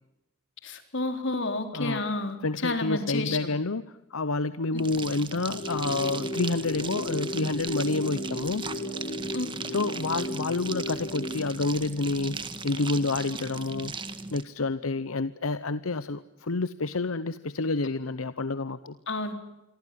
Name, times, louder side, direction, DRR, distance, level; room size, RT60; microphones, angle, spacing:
voice 1, 0.6-2.4 2.6-3.5 9.3-9.5 19.1-19.3, left 2 dB, 60° left, 7 dB, 3.9 m, -30 dB
voice 2, 1.7-2.0 2.4-8.6 9.7-13.9 14.3-19.0, left 3 dB, 85° left, 14 dB, 0.9 m, -29 dB
sound 1, 4.7-14.4, right 4 dB, 25° right, 1.7 m, -38 dB
sound 2, 5.5-11.5, equal, 40° left, 2.4 m, -35 dB
27.5 x 24.5 x 7.6 m, 0.94 s
head